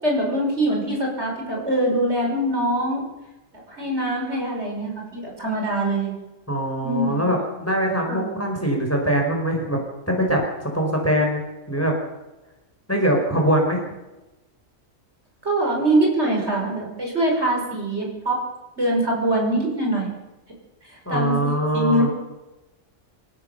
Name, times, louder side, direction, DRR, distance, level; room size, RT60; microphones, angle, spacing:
voice 1, 0.0-3.0 3.5-6.1 6.8-7.3 8.1-8.4 15.4-18.4 18.8-20.1 20.8-22.1, right 1 dB, 55° right, 0 dB, 6.1 m, -23 dB
voice 2, 6.5-9.8 10.1-10.4 10.7-11.4 11.7-11.9 12.9-13.9 21.1-22.1, right 1 dB, 10° left, 1 dB, 5.4 m, -22 dB
27.0 x 14.0 x 7.0 m, 1.0 s
omnidirectional pair, 1.3 m